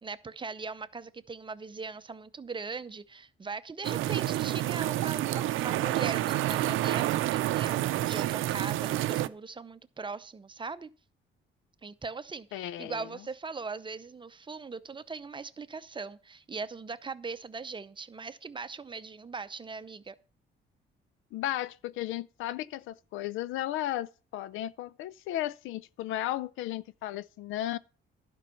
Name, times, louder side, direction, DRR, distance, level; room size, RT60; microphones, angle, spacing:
voice 1, 0.0-10.9 11.8-20.2, right 4 dB, 25° right, 0.7 m, -40 dB
sound 1, 3.8-9.3, right 14 dB, 85° right, 0.5 m, -29 dB
voice 2, 12.5-13.1 21.3-27.8, left 13 dB, 85° left, 0.5 m, -35 dB
11.5 x 5.5 x 6.9 m
cardioid pair, 90°, 20 cm